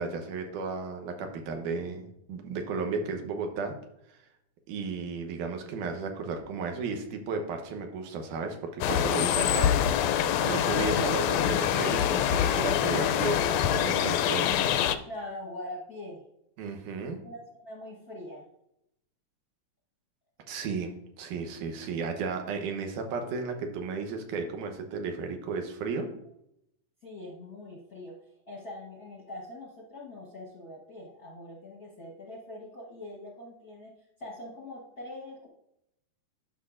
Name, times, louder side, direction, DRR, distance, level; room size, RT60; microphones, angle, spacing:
voice 1, 0.0-3.8 4.7-14.5 16.6-17.2 20.5-20.9 21.2-26.1, right 4 dB, 85° right, 5 dB, 2.6 m, -34 dB
sound 1, 8.8-15.0, left 10 dB, 80° left, 1.6 m, -25 dB
voice 2, 15.1-16.2 17.2-18.4 27.0-28.2 28.5-33.9 34.2-35.5, left 1 dB, 55° left, -3 dB, 1.0 m, -43 dB
12.0 x 6.0 x 2.5 m, 0.79 s
omnidirectional pair, 3.5 m